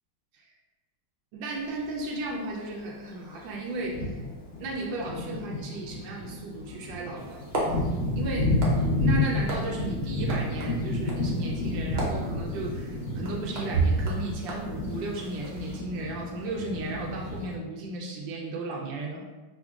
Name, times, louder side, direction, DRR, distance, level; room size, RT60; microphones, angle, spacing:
voice 1, 1.3-4.2 4.6-7.5 8.2-8.5 9.0-19.2, right 2 dB, 90° right, -2 dB, 1.3 m, -35 dB
Thunder, 1.5-1.7 2.6-2.7 3.3-3.4 3.8-17.6, left 2 dB, 45° left, 1.1 m, -31 dB
sound 1, 7.2-15.8, right 3 dB, 55° right, 0.7 m, -34 dB
5.8 x 2.2 x 2.3 m, 1.2 s
omnidirectional pair, 2.0 m